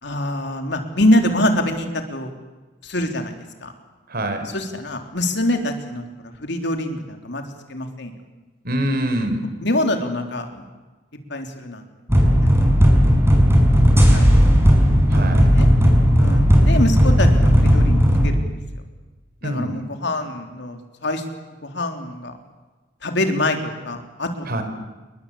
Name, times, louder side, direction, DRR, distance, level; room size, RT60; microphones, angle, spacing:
voice 1, 0.0-2.3 2.8-3.7 4.4-6.0 6.4-7.4 7.7-8.1 9.6-10.6 11.3-11.8 12.4-12.5 14.1-14.3 15.1-15.7 16.2-18.5 19.4-21.2 21.6-22.3 23.0-24.6, left 1 dB, 65° left, 5 dB, 3.7 m, -24 dB
voice 2, 4.1-4.5 8.6-9.4 15.1-15.5 19.4-19.8 24.5-24.6, right 1 dB, 55° right, 7 dB, 4.8 m, -24 dB
sound 1, 12.1-18.3, equal, 15° right, 5.9 m, -14 dB
29.0 x 22.5 x 8.6 m, 1.2 s
head